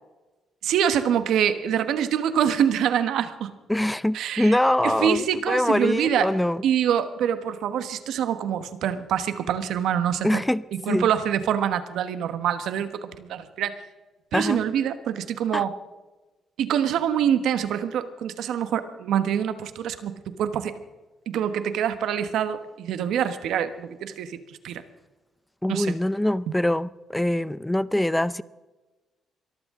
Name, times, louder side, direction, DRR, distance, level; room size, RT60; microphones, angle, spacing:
voice 1, 0.6-3.5 4.1-6.3 6.6-10.4 10.7-13.8 14.3-15.8 16.6-20.7 21.3-24.8 25.7-26.0, right 9 dB, 80° right, 1.2 m, -25 dB
voice 2, 3.7-6.6 10.2-11.1 14.3-14.6 15.5-15.6 25.6-28.4, left 1 dB, 5° left, 0.5 m, -24 dB
23.0 x 14.0 x 3.8 m
cardioid pair, 90°, 0 cm